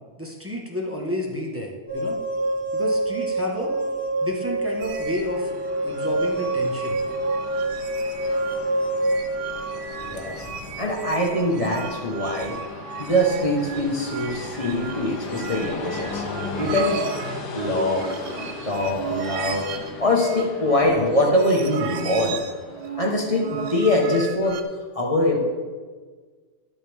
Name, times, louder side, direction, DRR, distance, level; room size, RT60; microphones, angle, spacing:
voice 1, 0.2-2.1 2.7-3.7 4.2-5.5 5.8-7.0, left 1 dB, 10° right, -2 dB, 1.2 m, -30 dB
sound 1, 1.9-10.6, right 1 dB, 45° left, 1.7 m, -26 dB
Train, 4.8-23.4, left 4 dB, 80° left, 1.6 m, -38 dB
sound 2, 4.8-24.6, right 7 dB, 85° right, 1.3 m, -36 dB
voice 2, 10.0-10.5 10.8-12.6 13.0-16.2 16.6-17.0 17.5-18.0 18.4-19.7 20.0-22.4 23.0-24.6 24.9-25.4, left 1 dB, 20° left, -1 dB, 1.2 m, -23 dB
12.0 x 8.0 x 3.6 m, 1.5 s
omnidirectional pair, 1.8 m